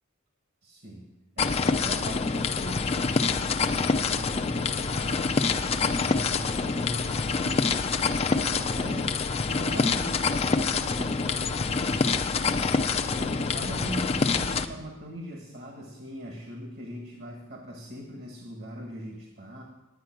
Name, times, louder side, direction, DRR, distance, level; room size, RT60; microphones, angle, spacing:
voice 1, 0.6-1.1 1.4-5.3 5.7-9.1 9.5-12.7 13.1-19.6, equal, 50° right, 1 dB, 1.5 m, -40 dB
sound 1, 1.4-14.6, left 4 dB, 30° left, 0.5 m, -26 dB
9.8 x 9.6 x 6.0 m, 1.0 s
head